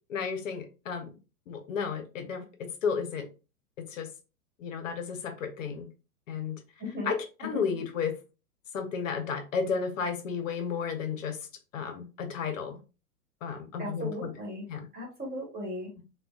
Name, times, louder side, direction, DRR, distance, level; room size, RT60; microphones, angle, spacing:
voice 1, 0.1-1.1 1.5-3.3 3.8-4.1 4.6-5.9 6.3-6.6 7.0-8.2 8.7-11.4 11.7-12.8 13.4-14.3 14.7-14.9, left 6 dB, 60° left, 0.7 m, -33 dB
voice 2, 6.8-7.1 7.5-7.6 13.8-14.6 14.9-15.9, equal, 20° right, 1.5 m, -36 dB
3.7 x 2.2 x 2.3 m
hypercardioid pair, 115°, 45 cm